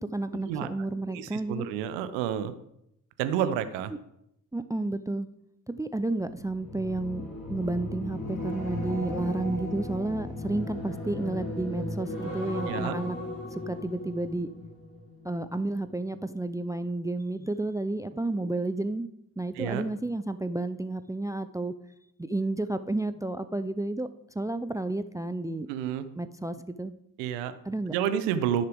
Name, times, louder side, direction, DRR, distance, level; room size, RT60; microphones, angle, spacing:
voice 1, 0.0-1.7 3.9-4.0 4.5-5.3 5.7-7.2 7.5-13.2 13.5-14.5 15.2-19.1 19.4-21.7 22.2-24.1 24.4-25.7 26.2-26.9 27.6-27.9, right 2 dB, 10° right, 13 dB, 0.5 m, -31 dB
voice 2, 1.1-2.5 3.2-3.9 12.7-12.9 18.3-18.5 19.6-19.8 25.7-26.1 27.2-27.5 27.9-28.7, right 9 dB, 80° right, 12 dB, 0.9 m, -29 dB
sound 1, 6.2-15.6 15.9-16.3, left 1 dB, 45° left, 4.2 m, -36 dB
15.5 x 6.6 x 3.5 m, 0.80 s
hypercardioid pair, 45°, 44 cm